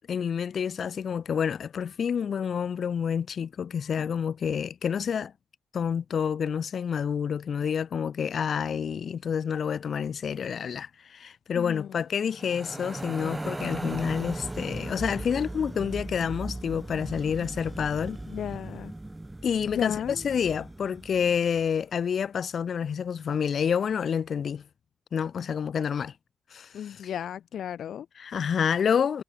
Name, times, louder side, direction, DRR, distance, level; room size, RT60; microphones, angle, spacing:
voice 1, 0.1-5.3 5.7-18.2 19.4-24.6 25.1-26.1 26.5-27.1 28.1-29.2, left 7 dB, 45° left, 3.2 m, -28 dB
voice 2, 11.6-11.9 18.3-18.9 19.8-20.2 26.7-28.1, left 9 dB, 65° left, 1.9 m, -34 dB
sound 1, 12.3-21.6, right 1 dB, 10° right, 6.7 m, -37 dB
wide cardioid pair, 160°, 0 cm